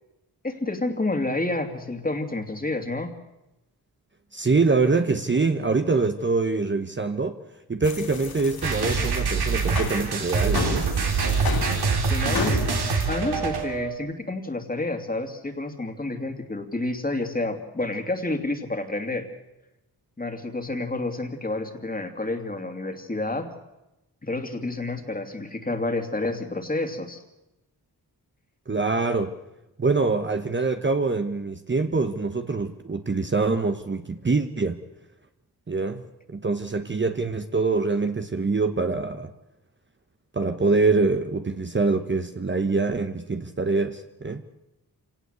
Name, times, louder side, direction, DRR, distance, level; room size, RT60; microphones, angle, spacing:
voice 1, 0.4-3.1 12.0-12.6 13.1-19.3 20.2-23.5 24.2-27.2, left 2 dB, 20° left, 5 dB, 2.7 m, -29 dB
voice 2, 4.3-7.4 7.7-10.9 28.7-29.3 29.8-34.8 35.7-36.0 36.3-39.3 40.3-44.4, right 3 dB, 30° right, 7 dB, 1.1 m, -24 dB
sound 1, 7.8-13.0, left 5 dB, 65° left, 2.7 m, -33 dB
sound 2, 8.6-13.9, right 4 dB, 80° right, 3.3 m, -25 dB
27.5 x 18.0 x 8.1 m, 0.96 s
wide cardioid pair, 115°, 38 cm